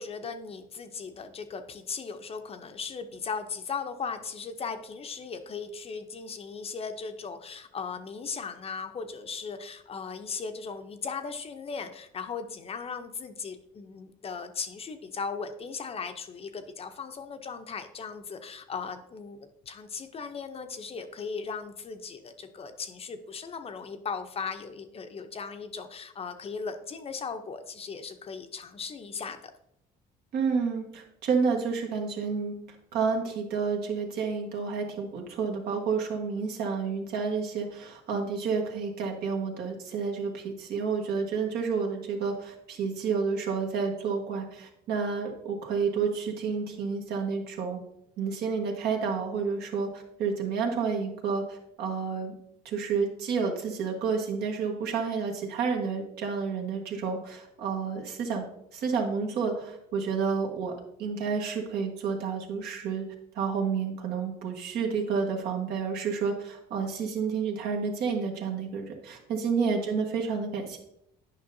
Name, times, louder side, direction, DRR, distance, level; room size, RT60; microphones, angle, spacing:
voice 1, 0.0-29.5 69.7-69.9, left 5 dB, 35° left, 8 dB, 0.6 m, -37 dB
voice 2, 30.3-32.5 32.9-47.8 48.2-52.3 52.6-58.4 58.7-60.7 61.0-63.0 63.3-70.8, right 5 dB, 70° right, 1 dB, 1.4 m, -30 dB
9.5 x 5.5 x 2.7 m, 0.79 s
cardioid pair, 110°, 17 cm